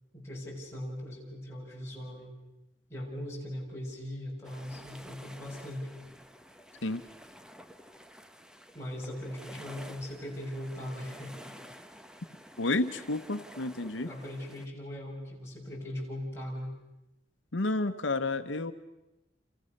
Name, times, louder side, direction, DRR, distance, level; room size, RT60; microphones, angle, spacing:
voice 1, 0.1-2.3 2.9-5.9 8.7-11.3 14.0-16.7, left 1 dB, 15° left, -3 dB, 7.1 m, -39 dB
sound 1, 4.4-14.7, equal, 5° right, 1.0 m, -51 dB
voice 2, 12.6-14.1 17.5-18.7, left 2 dB, 85° left, 9 dB, 1.1 m, -30 dB
29.5 x 29.5 x 6.6 m, 0.95 s
head